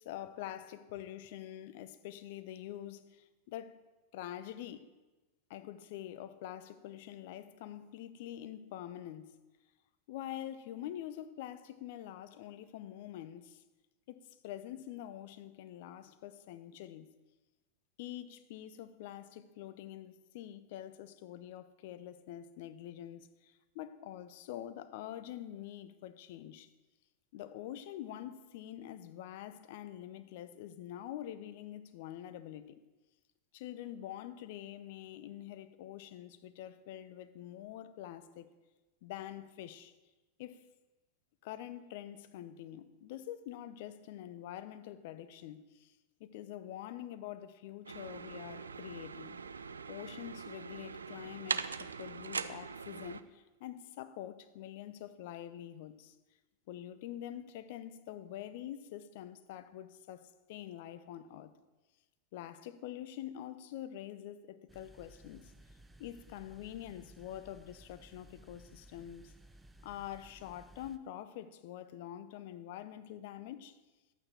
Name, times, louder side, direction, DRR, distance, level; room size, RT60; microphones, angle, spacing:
voice 1, 0.0-3.8 4.1-4.9 5.5-9.4 10.1-13.6 14.1-17.1 18.0-26.7 27.3-32.8 33.5-38.5 39.0-39.9 40.4-40.7 41.4-49.4 49.9-56.2 56.7-61.5 62.3-65.5 66.0-69.3 69.8-73.8, left 12 dB, 50° left, 0.6 m, -46 dB
sound 1, 47.8-53.2, right 5 dB, 75° right, 0.3 m, -41 dB
sound 2, 64.7-71.0, right 1 dB, 5° right, 0.5 m, -58 dB
11.0 x 8.7 x 4.3 m
figure-of-eight pair, 90°, 0 cm